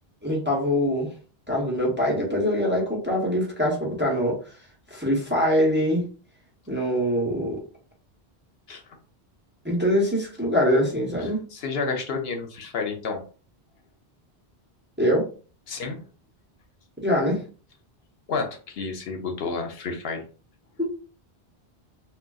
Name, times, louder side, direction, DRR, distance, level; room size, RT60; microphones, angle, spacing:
voice 1, 0.2-1.1 1.5-4.4 4.9-6.1 6.7-7.6 9.6-11.4 15.0-15.3 17.0-17.4 20.8-20.9, equal, 10° right, -4 dB, 0.8 m, -23 dB
voice 2, 11.2-13.2 15.7-16.0 18.3-20.2, left 4 dB, 70° left, 4 dB, 0.8 m, -30 dB
3.7 x 2.3 x 2.3 m, 0.38 s
omnidirectional pair, 1.1 m